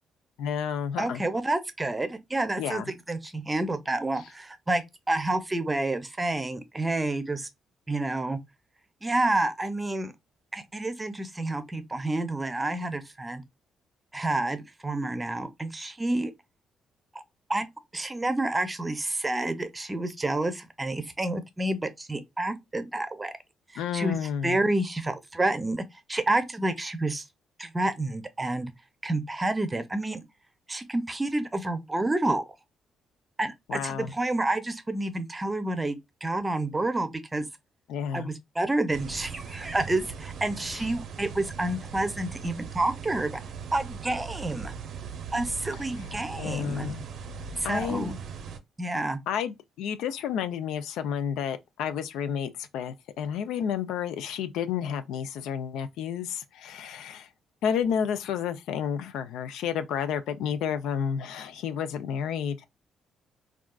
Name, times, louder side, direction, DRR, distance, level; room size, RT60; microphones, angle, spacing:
voice 1, 0.4-1.2 2.6-2.9 23.8-24.6 33.7-34.1 37.9-38.3 40.7-40.8 46.4-47.0 47.6-48.1 49.3-57.3 57.6-62.6, left 8 dB, 90° left, 0.4 m, -31 dB
voice 2, 1.0-2.8 3.1-7.5 7.9-8.4 9.0-10.1 10.5-13.4 14.1-16.3 17.1-17.2 17.5-17.7 17.9-23.3 23.7-25.8 26.1-27.2 27.6-28.7 29.0-30.2 30.7-32.4 33.4-37.5 38.1-43.3 43.7-44.7 45.3-46.9 47.6-48.2 48.8-49.2, right 2 dB, 20° right, 0.6 m, -29 dB
sound 1, 38.9-48.6, right 6 dB, 70° right, 0.6 m, -40 dB
3.5 x 2.3 x 2.3 m
cardioid pair, 90°, 0 cm